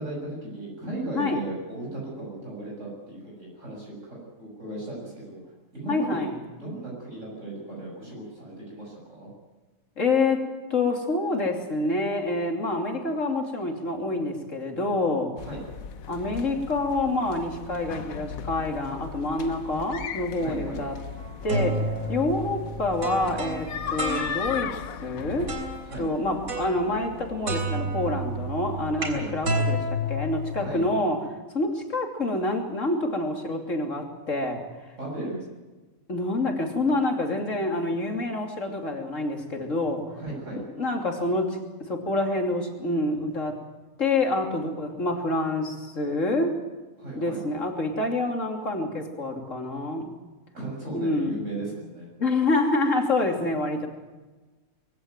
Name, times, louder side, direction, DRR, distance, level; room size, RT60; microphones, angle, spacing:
voice 1, 0.0-5.4 5.7-6.3 6.6-9.3 15.4-15.6 20.3-20.8 25.8-26.1 29.0-29.3 30.5-30.8 35.0-35.4 40.1-40.6 47.0-47.4 50.5-52.1, right 2 dB, 60° right, -3 dB, 7.2 m, -36 dB
voice 2, 5.9-6.4 10.0-10.4 10.7-15.3 16.1-20.9 21.4-21.8 22.1-24.7 25.0-25.5 26.0-31.2 31.5-34.9 36.1-40.0 40.7-43.6 44.0-46.6 47.1-50.2 50.9-51.4 52.2-53.9, left 2 dB, 65° left, 3 dB, 3.3 m, -27 dB
sound 1, 15.4-30.9, left 7 dB, 85° left, 1.3 m, -38 dB
sound 2, 21.2-24.8 25.5-25.9 26.5-27.2 27.5-31.0, right 1 dB, 80° right, 4.1 m, -30 dB
23.0 x 16.5 x 9.4 m, 1.2 s
omnidirectional pair, 1.4 m